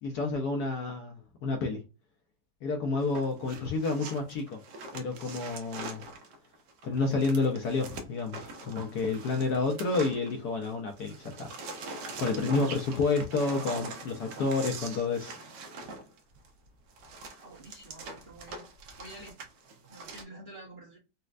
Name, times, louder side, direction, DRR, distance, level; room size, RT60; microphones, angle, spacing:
voice 1, 0.0-1.8 2.6-4.6 4.9-6.0 6.8-11.5 12.2-15.3, left 3 dB, 70° left, 1.0 m, -30 dB
sound 1, 3.0-10.7 11.0-20.2, right 3 dB, 70° right, 1.2 m, -43 dB
voice 2, 17.4-18.6 19.0-19.4 19.9-21.0, right 1 dB, 45° right, 0.9 m, -48 dB
4.2 x 2.1 x 2.4 m
omnidirectional pair, 2.1 m